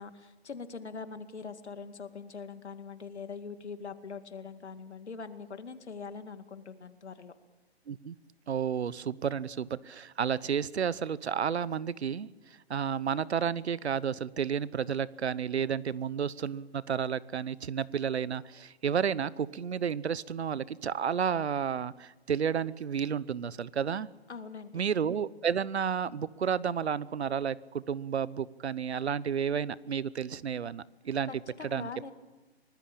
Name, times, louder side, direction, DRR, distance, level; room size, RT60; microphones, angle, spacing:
voice 1, 0.0-7.3 24.3-24.7 31.3-32.1, left 5 dB, 85° left, 9 dB, 2.3 m, -42 dB
voice 2, 8.5-12.3 12.7-24.1 24.7-31.3 31.6-31.9, right 7 dB, 75° right, 20 dB, 1.0 m, -31 dB
24.5 x 19.0 x 8.7 m, 1.2 s
hypercardioid pair, 160°, 33 cm